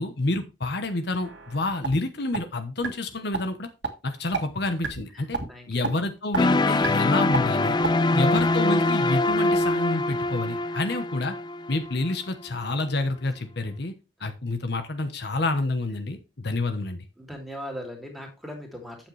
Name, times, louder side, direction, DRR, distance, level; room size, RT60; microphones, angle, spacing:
voice 1, 0.0-3.7 4.0-5.4 5.7-7.8 8.1-11.3 11.7-13.9 14.2-17.0, left 2 dB, 60° left, 8 dB, 1.0 m, -28 dB
sound 1, 1.2-2.0 2.3-2.4 2.8-2.9 3.3-3.4 3.8-3.9 4.3-4.4 4.8-5.0 5.3-5.5 5.8-5.9 6.3-6.4 6.8-6.9 7.3-7.4 7.8-7.9, right 5 dB, 70° right, 1.7 m, -28 dB
voice 2, 5.1-5.9 10.6-10.8 17.2-19.1, equal, ahead, 1 dB, 2.9 m, -40 dB
sound 2, 6.4-12.3, left 2 dB, 25° left, 0.5 m, -24 dB
8.9 x 7.3 x 3.3 m, 0.28 s
head